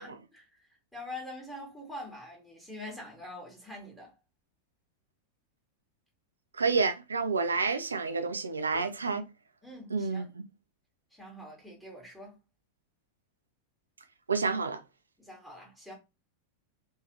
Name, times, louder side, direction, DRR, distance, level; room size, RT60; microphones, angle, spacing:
voice 1, 0.0-4.1 8.7-8.8 9.6-10.2 11.1-12.4 15.2-15.9, left 1 dB, ahead, 1.7 m, -45 dB
voice 2, 6.6-9.2 9.9-10.4 14.3-14.8, right 4 dB, 75° right, 0.5 m, -29 dB
3.4 x 3.3 x 2.9 m
figure-of-eight pair, 90°, 0 cm